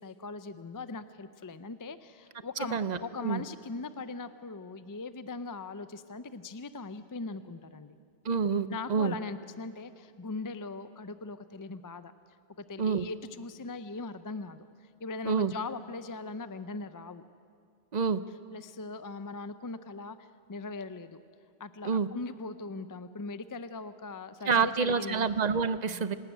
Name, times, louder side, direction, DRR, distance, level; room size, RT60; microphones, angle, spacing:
voice 1, 0.0-8.0 8.7-12.1 12.6-17.2 18.5-21.2 21.6-25.3 25.9-26.1, left 3 dB, 25° left, 12 dB, 0.4 m, -40 dB
voice 2, 2.7-3.4 8.2-9.2 12.8-13.1 15.2-15.5 17.9-18.2 21.8-22.1 24.5-26.1, right 5 dB, 45° right, 13 dB, 0.7 m, -28 dB
26.5 x 12.5 x 9.0 m, 2.3 s
omnidirectional pair, 1.1 m